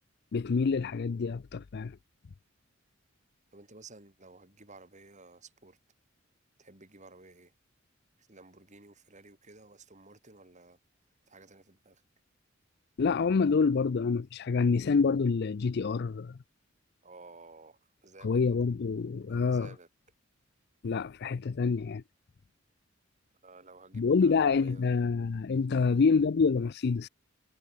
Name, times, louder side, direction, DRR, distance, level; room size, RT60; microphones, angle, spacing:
voice 1, 0.3-2.0 13.0-16.4 18.2-19.7 20.8-22.0 23.9-27.1, left 5 dB, 55° left, 0.4 m, -27 dB
voice 2, 3.5-5.8 6.6-7.5 8.2-10.8 11.3-12.0 17.0-18.4 19.3-19.9 23.4-25.0 25.7-25.9, right 3 dB, 35° right, 4.9 m, -54 dB
head